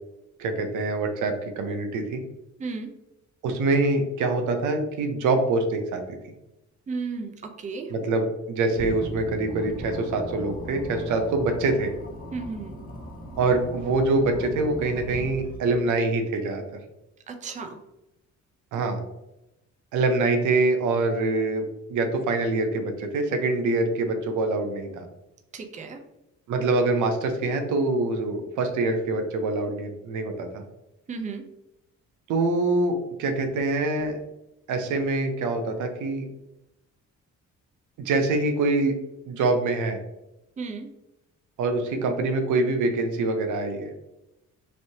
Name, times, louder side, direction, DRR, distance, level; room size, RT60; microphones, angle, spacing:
voice 1, 0.4-2.2 3.4-6.0 7.9-11.9 13.4-16.6 18.7-19.0 19.9-25.0 26.5-30.6 32.3-34.2 34.7-36.2 38.0-38.9 39.3-40.0 41.6-43.9, right 2 dB, 80° right, 5 dB, 0.6 m, -25 dB
voice 2, 6.9-7.3 7.6-7.9 12.3-12.7 17.3-17.8 25.5-26.0 31.1-31.4 40.6-40.9, right 4 dB, 25° right, 4 dB, 0.5 m, -33 dB
sound 1, 8.7-16.0, equal, 30° left, 0.8 m, -38 dB
3.2 x 2.6 x 2.7 m, 0.92 s
cardioid pair, 90°, 30 cm